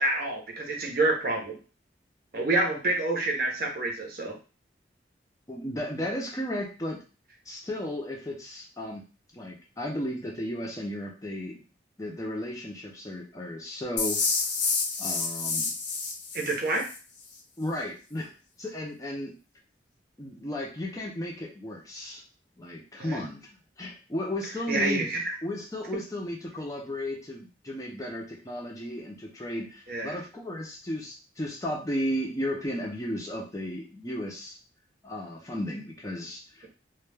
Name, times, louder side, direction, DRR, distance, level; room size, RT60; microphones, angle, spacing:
voice 1, 0.0-1.6 2.3-4.3 16.3-16.9 23.0-23.2 24.7-25.3 29.9-30.2, right 2 dB, 55° right, 1 dB, 0.6 m, -28 dB
voice 2, 5.5-7.0 7.5-9.0 9.3-11.6 12.0-14.2 15.0-15.7 17.6-18.3 18.6-19.3 20.2-22.2 22.6-23.5 23.8-34.6 35.0-36.7, left 1 dB, 20° left, -1 dB, 0.4 m, -34 dB
sound 1, 14.0-17.0, left 4 dB, 75° left, 0.6 m, -29 dB
2.2 x 2.1 x 3.2 m, 0.35 s
head